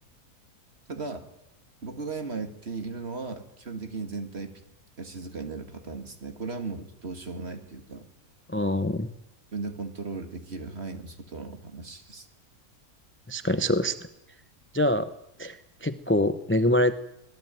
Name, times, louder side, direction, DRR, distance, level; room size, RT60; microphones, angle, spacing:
voice 1, 0.9-1.3 1.8-4.6 5.0-8.1 9.5-12.3, right 3 dB, 45° right, 7 dB, 2.5 m, -36 dB
voice 2, 8.5-9.1 13.3-13.9 14.7-15.1 15.4-16.9, left 1 dB, 15° left, 11 dB, 0.4 m, -25 dB
25.0 x 18.0 x 9.2 m, 0.88 s
omnidirectional pair, 1.6 m